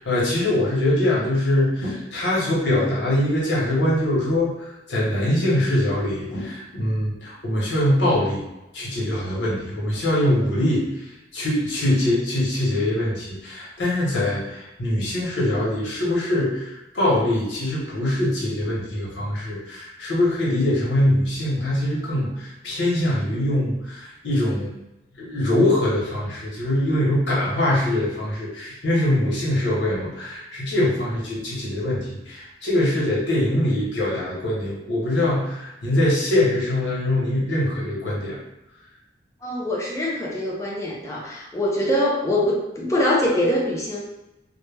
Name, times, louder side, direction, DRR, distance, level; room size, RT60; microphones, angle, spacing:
voice 1, 0.0-8.4 8.7-10.9 11.3-24.7 25.2-38.4, left 1 dB, 80° left, -5 dB, 0.9 m, -23 dB
voice 2, 39.4-44.0, left 1 dB, 15° left, -4 dB, 0.5 m, -24 dB
2.1 x 2.1 x 3.3 m, 0.93 s
head